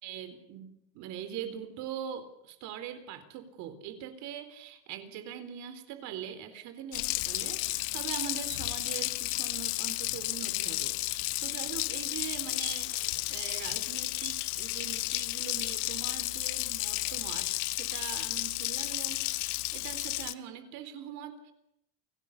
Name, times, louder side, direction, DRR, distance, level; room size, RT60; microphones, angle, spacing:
voice 1, 0.0-21.5, right 9 dB, 60° right, 10 dB, 3.9 m, -42 dB
Water tap faucet, 6.9-20.3, left 21 dB, 85° left, 1.1 m, -33 dB
29.5 x 18.0 x 7.1 m, 0.78 s
cardioid pair, 145°, 32 cm